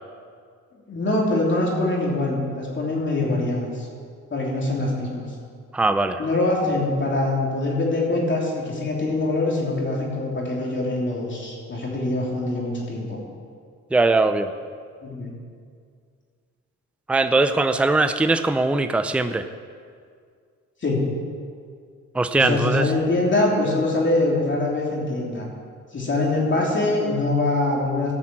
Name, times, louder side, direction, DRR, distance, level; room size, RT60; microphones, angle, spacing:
voice 1, 0.9-3.9 4.3-5.3 6.2-13.2 15.0-15.3 20.8-21.1 22.3-25.5 25.9-28.1, left 2 dB, 40° left, -2 dB, 3.2 m, -23 dB
voice 2, 5.7-6.2 13.9-14.5 17.1-19.5 22.1-22.9, right 3 dB, 5° right, 9 dB, 0.5 m, -20 dB
13.5 x 5.8 x 7.6 m, 2.1 s
cardioid pair, 90°, 30 cm